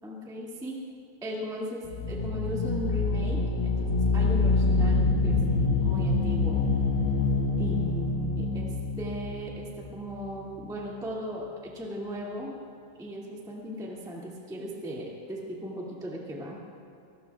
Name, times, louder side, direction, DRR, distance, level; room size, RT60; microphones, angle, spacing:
voice 1, 0.0-0.7 1.2-6.6 7.6-12.5 13.0-16.6, equal, 5° right, -4 dB, 0.6 m, -37 dB
sound 1, 1.8-10.5, left 3 dB, 65° left, 3.2 m, -26 dB
25.0 x 20.0 x 2.4 m, 2.7 s
omnidirectional pair, 5.0 m